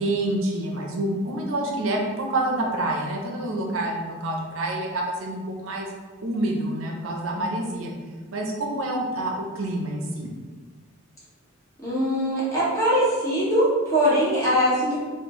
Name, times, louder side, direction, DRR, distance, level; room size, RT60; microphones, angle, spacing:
voice 1, 0.0-5.9 6.2-7.9 8.3-10.3, right 1 dB, 65° right, 0 dB, 0.5 m, -27 dB
voice 2, 11.8-15.0, equal, 15° left, -9 dB, 1.0 m, -22 dB
4.1 x 2.0 x 3.0 m, 1.4 s
head